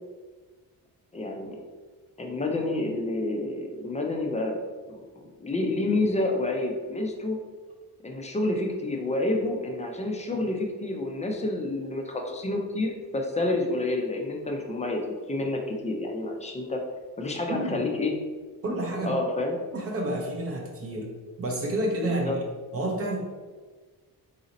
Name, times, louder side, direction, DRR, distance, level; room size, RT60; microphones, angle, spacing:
voice 1, 1.1-1.6 2.2-4.6 4.9-5.0 5.4-7.4 8.0-16.8 17.2-18.1 19.0-19.6 22.0-22.4, left 2 dB, 20° left, 2 dB, 0.4 m, -29 dB
voice 2, 17.5-17.9 18.6-19.2 19.7-21.1 21.4-22.4 22.7-23.2, right 1 dB, 40° right, 0 dB, 0.6 m, -29 dB
4.0 x 2.6 x 4.0 m, 1.4 s
wide cardioid pair, 180°, 37 cm